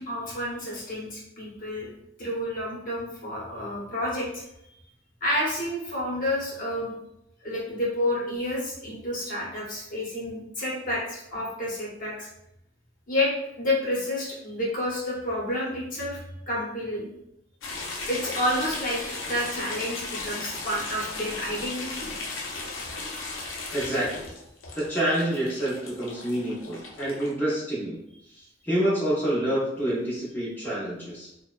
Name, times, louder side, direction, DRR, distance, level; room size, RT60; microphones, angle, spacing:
voice 1, 0.0-1.9 2.2-4.4 5.2-6.9 7.4-12.3 13.1-16.2 16.5-17.1 18.1-22.1, left 1 dB, 45° left, -5 dB, 0.8 m, -30 dB
sound 1, 17.6-27.3, left 3 dB, 75° left, 0.5 m, -36 dB
voice 2, 23.7-24.3 24.7-28.0 28.6-31.3, right 1 dB, 10° left, -8 dB, 0.7 m, -27 dB
2.7 x 2.0 x 2.3 m, 0.81 s
head